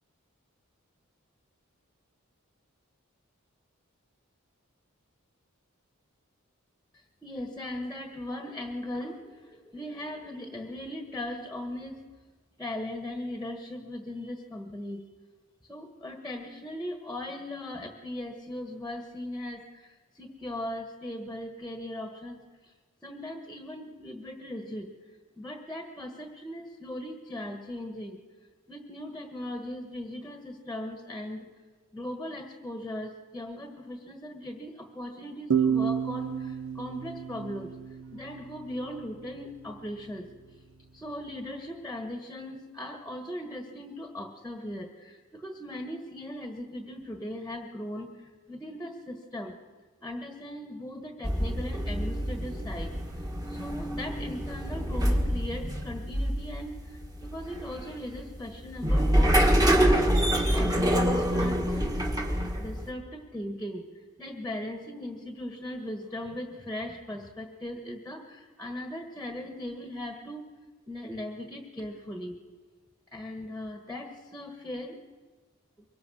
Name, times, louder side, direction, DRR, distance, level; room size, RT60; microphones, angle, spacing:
voice 1, 6.9-12.1 12.6-15.0 15.7-22.7 23.0-24.9 25.4-28.2 28.7-31.5 31.9-37.8 38.1-40.3 40.9-49.5 50.0-53.0 53.5-61.9 62.6-63.9 64.2-70.4 70.9-72.4 73.1-75.0, left 1 dB, 5° left, 4 dB, 1.4 m, -39 dB
sound 1, 35.5-38.9, right 7 dB, 80° right, 1.1 m, -30 dB
sound 2, 51.2-62.9, equal, 15° right, 1.8 m, -26 dB
24.0 x 23.0 x 6.3 m, 1.4 s
head